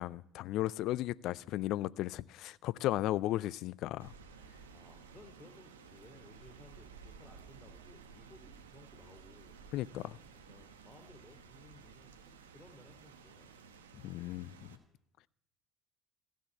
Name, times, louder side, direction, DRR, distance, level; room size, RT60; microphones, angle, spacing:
voice 1, 0.0-4.1 9.7-10.2 13.9-14.8, left 15 dB, 60° left, 0.4 m, -35 dB
Rain, 4.0-14.8, right 5 dB, 85° right, 1.2 m, -55 dB
voice 2, 4.7-9.6 10.4-13.5, left 1 dB, 15° left, 2.6 m, -59 dB
15.5 x 7.4 x 9.8 m
hypercardioid pair, 65°, 0 cm